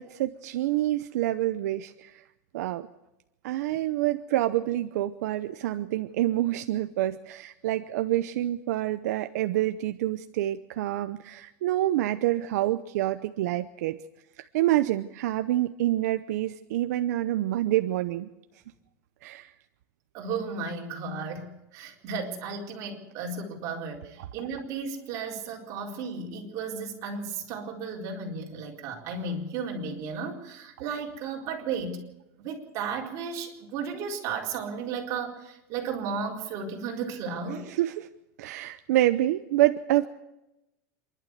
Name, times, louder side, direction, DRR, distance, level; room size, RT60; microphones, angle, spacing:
voice 1, 0.0-2.2 2.5-2.9 3.4-14.0 14.4-18.3 19.2-19.5 37.5-38.1 38.4-40.1, right 14 dB, 75° right, 10 dB, 0.8 m, -27 dB
voice 2, 20.1-32.0 32.4-37.7, right 5 dB, 40° right, -1 dB, 4.3 m, -34 dB
27.0 x 12.0 x 8.2 m, 0.92 s
supercardioid pair, 160°, 9 cm